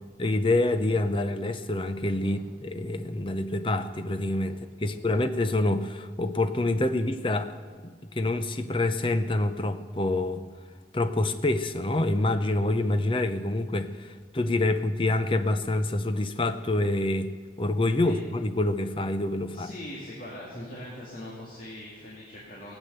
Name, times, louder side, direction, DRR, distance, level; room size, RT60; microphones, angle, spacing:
voice 1, 0.2-7.6 7.8-10.4 10.9-17.3 17.6-19.7, left 2 dB, 30° left, 9 dB, 0.7 m, -27 dB
voice 2, 4.8-5.2 18.0-18.2 19.5-22.7, left 1 dB, 50° left, -6 dB, 2.3 m, -41 dB
18.0 x 8.3 x 6.8 m, 1.5 s
head